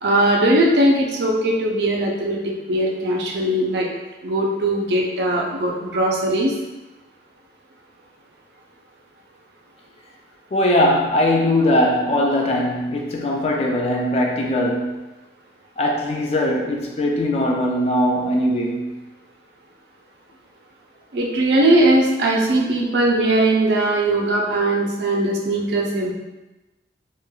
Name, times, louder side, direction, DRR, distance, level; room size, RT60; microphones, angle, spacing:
voice 1, 0.0-2.4 2.7-3.9 4.2-6.5 21.1-26.1, right 1 dB, 75° right, -1 dB, 0.5 m, -19 dB
voice 2, 10.5-15.0 15.8-18.9, left 1 dB, 35° left, 0 dB, 0.3 m, -20 dB
3.1 x 2.2 x 2.2 m, 1.1 s
head